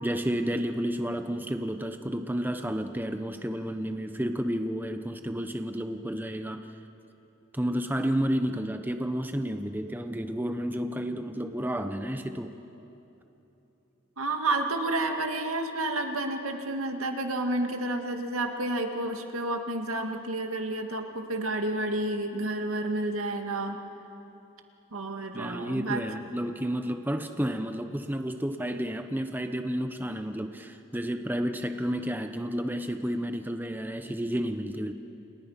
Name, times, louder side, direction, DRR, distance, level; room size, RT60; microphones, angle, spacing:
voice 1, 0.0-6.7 7.5-12.6 25.3-34.9, equal, 10° right, 7 dB, 0.8 m, -31 dB
voice 2, 14.2-23.8 24.9-26.0, right 2 dB, 85° right, 4 dB, 2.1 m, -30 dB
29.5 x 28.0 x 5.8 m, 2.9 s
head